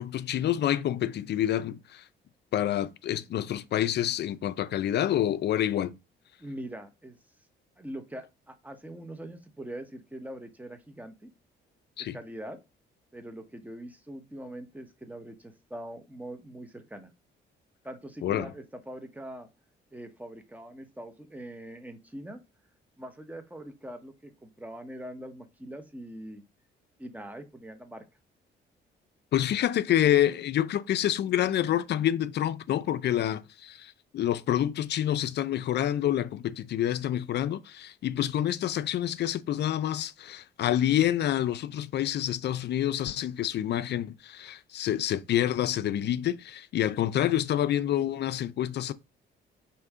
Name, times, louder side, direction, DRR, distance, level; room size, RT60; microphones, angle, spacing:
voice 1, 0.0-2.0 2.5-5.9 12.0-12.2 18.2-18.5 29.3-48.9, left 11 dB, 60° left, 0.4 m, -27 dB
voice 2, 6.4-7.2 7.8-11.3 12.1-12.6 13.1-17.1 17.8-19.5 19.9-22.4 23.0-26.4 27.0-28.1, right 1 dB, 10° right, 0.9 m, -42 dB
5.1 x 2.8 x 3.6 m
cardioid pair, 90°, 20 cm